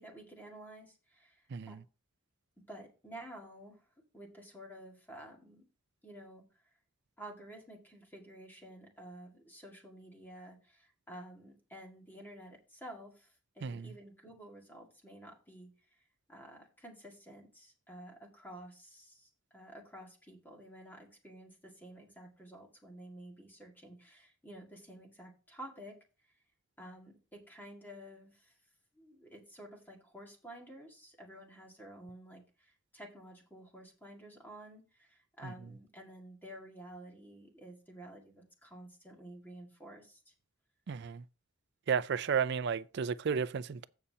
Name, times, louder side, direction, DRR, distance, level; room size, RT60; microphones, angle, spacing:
voice 1, 0.0-1.8 2.7-5.7 6.0-6.4 7.2-26.0 26.8-28.5 28.9-40.3, right 1 dB, 10° left, 1.9 m, -51 dB
voice 2, 1.5-1.8 13.6-13.9 35.4-35.5 40.9-41.2 41.9-43.8, right 6 dB, 55° right, 0.4 m, -33 dB
15.5 x 5.6 x 2.8 m
head